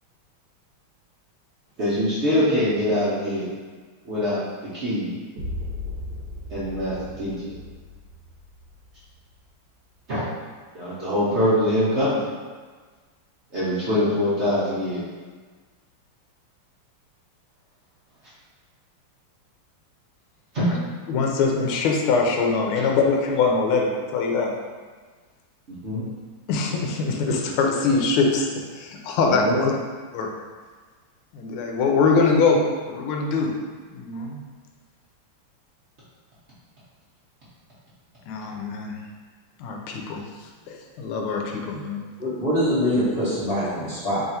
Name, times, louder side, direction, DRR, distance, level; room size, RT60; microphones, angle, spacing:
voice 1, 1.8-3.5 4.0-4.4 4.7-5.1 6.5-7.4 10.1-10.2 10.7-12.2 13.5-15.1 20.5-20.7 22.7-22.9 25.7-26.0 29.2-29.6, left 1 dB, 65° right, -11 dB, 0.6 m, -23 dB
sound 1, 5.4-9.4, left 2 dB, 40° right, 1.7 m, -36 dB
voice 2, 21.1-24.5 26.5-28.5 28.7-29.7 30.1-30.3 31.3-32.6 32.9-33.5 33.9-34.4 38.3-39.0 39.6-40.2 40.7-42.0, left 4 dB, 80° left, 1 dB, 1.4 m, -23 dB
voice 3, 42.2-44.2, equal, 40° left, -13 dB, 0.8 m, -23 dB
3.4 x 2.4 x 4.1 m, 1.4 s
omnidirectional pair, 2.4 m